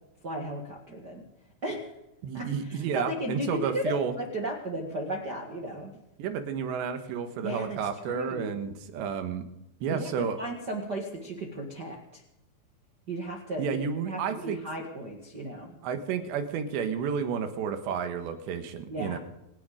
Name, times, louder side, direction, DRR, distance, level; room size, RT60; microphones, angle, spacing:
voice 1, 0.2-1.2 1.6-1.9 2.3-5.9 7.4-7.8 8.0-8.6 9.9-12.2 13.1-13.8 14.0-15.8 18.9-19.2, right 1 dB, 55° right, 0 dB, 1.2 m, -35 dB
voice 2, 2.2-4.1 6.2-9.4 9.8-10.4 13.6-14.6 15.8-19.2, right 6 dB, 80° right, 7 dB, 3.7 m, -31 dB
27.0 x 10.0 x 5.1 m, 0.88 s
omnidirectional pair, 5.0 m